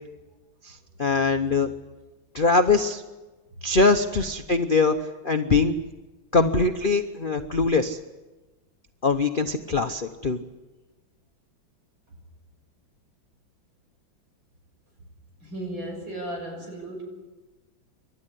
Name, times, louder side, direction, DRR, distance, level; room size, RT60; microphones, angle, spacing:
voice 1, 0.6-1.7 2.3-3.0 3.6-4.9 5.2-5.7 6.3-8.0 9.0-10.4, left 3 dB, 45° left, 5 dB, 0.6 m, -22 dB
voice 2, 15.4-17.0, right 1 dB, 75° right, 1 dB, 7.6 m, -35 dB
28.5 x 12.5 x 9.8 m, 1.2 s
omnidirectional pair, 2.1 m